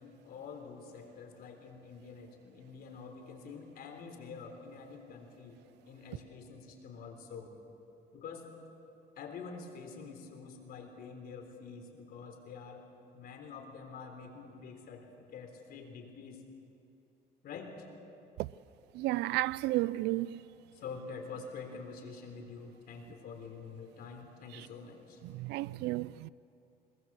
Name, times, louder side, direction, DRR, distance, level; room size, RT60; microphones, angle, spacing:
voice 1, 0.0-5.6 5.9-7.5 8.1-8.5 9.2-12.9 13.1-16.4 17.4-17.8 20.7-25.2, left 5 dB, 65° left, 3.6 m, -47 dB
voice 2, 18.9-20.4 25.3-26.3, right 18 dB, 85° right, 0.4 m, -32 dB
21.5 x 20.5 x 7.4 m
cardioid pair, 110°, 17 cm